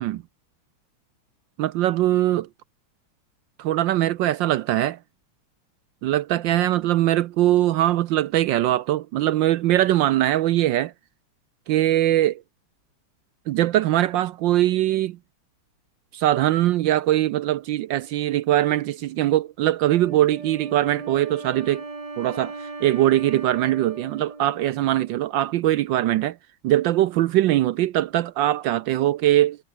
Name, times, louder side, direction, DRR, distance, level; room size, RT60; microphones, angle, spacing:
voice 1, 1.6-2.5 3.6-5.0 6.0-10.9 11.7-12.4 13.5-15.2 16.1-21.8 22.2-22.5 22.8-26.4 26.6-29.6, right 14 dB, 75° right, 1.1 m, -21 dB
Wind instrument woodwind instrument, 19.9-25.3, right 3 dB, 20° right, 1.3 m, -38 dB
omnidirectional pair, 2.4 m